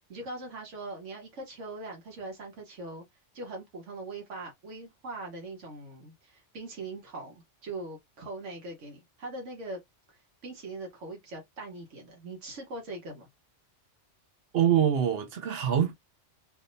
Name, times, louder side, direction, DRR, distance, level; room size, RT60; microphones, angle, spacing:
voice 1, 0.1-3.0 3.3-9.8 10.1-13.3, right 2 dB, 85° right, 1.4 m, -41 dB
voice 2, 14.5-15.9, right 9 dB, 60° right, 0.8 m, -24 dB
3.5 x 2.7 x 2.6 m
omnidirectional pair, 1.2 m